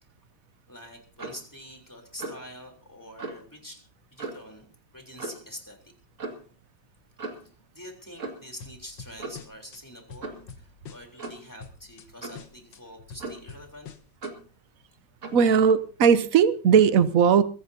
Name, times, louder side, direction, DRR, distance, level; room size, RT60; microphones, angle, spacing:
voice 1, 0.7-3.8 4.1-4.7 4.9-5.9 7.7-13.9, equal, 10° left, 2 dB, 3.6 m, -45 dB
Clock, 1.2-1.5 2.2-2.5 3.2-3.4 4.2-4.5 5.2-5.5 6.2-6.4 7.2-7.5 8.2-8.5 9.2-9.5 10.2-10.5 11.2-11.5 12.2-12.5 13.2-13.6 14.2-14.5 15.2-15.4, right 3 dB, 40° right, 2.3 m, -38 dB
sound 1, 8.6-9.8 10.1-11.3 11.6-12.1 12.3-14.3, left 6 dB, 70° left, 1.9 m, -45 dB
voice 2, 15.3-17.4, right 7 dB, 55° right, 13 dB, 1.1 m, -18 dB
22.5 x 15.5 x 2.8 m, 0.39 s
omnidirectional pair, 2.1 m